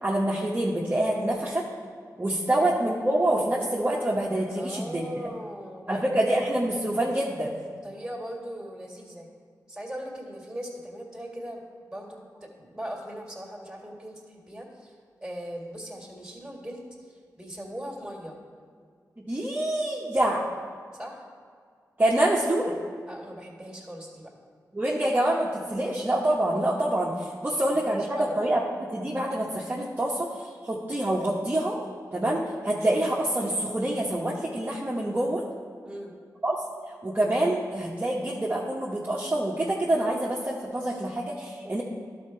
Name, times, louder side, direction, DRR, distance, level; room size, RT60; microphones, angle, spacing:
voice 1, 0.0-1.7 2.2-5.0 5.9-7.6 19.2-20.5 22.0-22.7 24.7-31.8 32.1-35.4 36.4-36.5 37.0-41.8, right 1 dB, 25° right, -4 dB, 1.0 m, -26 dB
voice 2, 4.6-6.0 7.8-9.3 9.7-11.6 11.9-14.9 15.2-18.4 20.9-21.2 23.1-24.3 27.4-28.4 35.8-36.2 41.6-41.8, equal, 10° right, -1 dB, 2.0 m, -39 dB
11.5 x 4.3 x 4.3 m, 2.1 s
cardioid pair, 55°, 7 cm